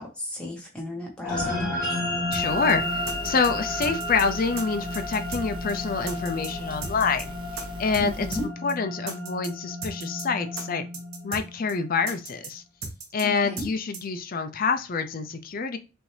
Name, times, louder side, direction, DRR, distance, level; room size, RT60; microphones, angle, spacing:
voice 1, 0.0-1.7 8.0-8.4 13.2-13.6, left 1 dB, 5° left, -1 dB, 1.2 m, -34 dB
sound 1, 1.2-11.9, left 1 dB, 20° left, 2.4 m, -32 dB
voice 2, 2.3-7.3 7.8-10.8 11.2-12.6 13.1-15.8, left 5 dB, 40° left, 7 dB, 0.4 m, -27 dB
sound 2, 2.3-2.4 2.7-2.8 3.1-3.5 3.8-4.2 4.6-4.7 4.9-5.4 5.7-5.8 6.1-6.5 6.8-7.2 7.6-7.7 7.9-8.1 8.3-8.4 8.7-8.8 9.1-9.5 9.8-10.2 10.6-10.7 10.9-11.4 11.7-11.8 12.1-12.5 12.8-13.2 13.6-13.7 13.9-14.0, right 4 dB, 75° right, 1.1 m, -36 dB
sound 3, 2.4-8.5, equal, 20° right, 0.9 m, -40 dB
6.0 x 2.6 x 3.3 m, 0.31 s
head